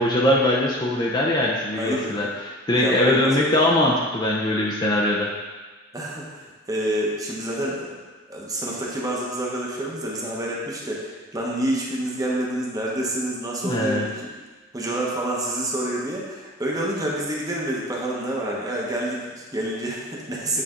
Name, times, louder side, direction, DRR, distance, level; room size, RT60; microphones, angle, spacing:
voice 1, 0.0-5.3 13.6-14.0, left 1 dB, 20° left, -3 dB, 0.6 m, -21 dB
voice 2, 1.7-2.2 2.7-3.6 5.9-8.0 8.3-14.3 14.7-20.6, right 1 dB, 20° right, -4 dB, 1.0 m, -28 dB
8.4 x 3.3 x 3.8 m, 1.3 s
head